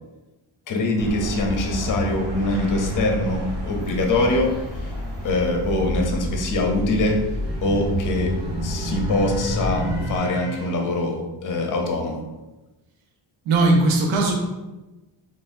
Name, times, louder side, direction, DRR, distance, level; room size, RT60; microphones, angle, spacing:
voice 1, 0.7-4.5 4.8-4.9 5.2-7.2 7.6-8.3 8.6-12.2, left 2 dB, 40° left, 2 dB, 0.6 m, -23 dB
sound 1, 1.0-10.2, equal, 60° right, 1.2 m, -29 dB
sound 2, 5.1-11.1, left 2 dB, 10° right, 1.3 m, -43 dB
voice 2, 13.4-14.3, right 2 dB, 80° right, 0 dB, 0.8 m, -18 dB
4.1 x 3.2 x 2.6 m, 1.1 s
wide cardioid pair, 170°, 47 cm